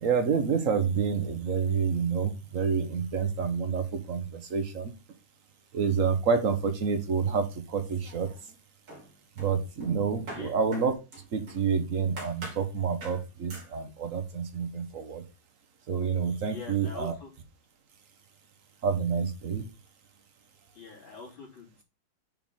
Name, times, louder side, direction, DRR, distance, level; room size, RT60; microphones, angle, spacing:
voice 1, 0.0-4.9 5.7-8.3 9.4-10.9 11.3-15.2 15.9-17.1 18.8-19.7, right 6 dB, 45° right, 7 dB, 1.3 m, -28 dB
sound 1, 7.8-8.5 8.9-11.7 12.2-12.7 13.0-13.2 13.5-13.7, right 2 dB, 65° right, 3.7 m, -44 dB
voice 2, 16.5-17.3 20.7-21.8, left 4 dB, 70° left, -3 dB, 4.0 m, -44 dB
8.9 x 4.6 x 3.7 m, 0.27 s
omnidirectional pair, 2.3 m